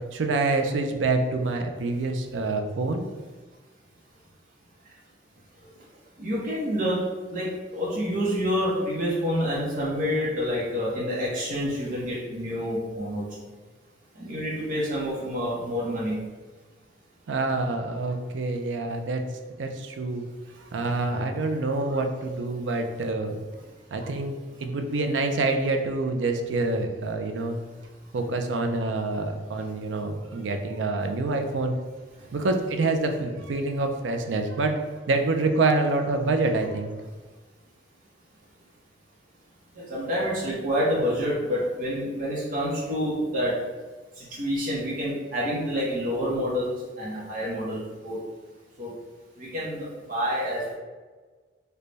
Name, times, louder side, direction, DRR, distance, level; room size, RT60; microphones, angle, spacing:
voice 1, 0.1-3.1 17.3-19.2 19.6-20.2 20.6-23.4 23.9-27.6 28.1-31.8 32.3-36.9, right 3 dB, 90° right, 5 dB, 0.4 m, -26 dB
voice 2, 6.2-13.3 14.1-16.2 32.2-32.3 39.7-43.6 44.1-48.2 48.8-48.9 49.4-50.7, equal, 45° right, -6 dB, 0.8 m, -28 dB
3.3 x 2.2 x 3.9 m, 1.4 s
head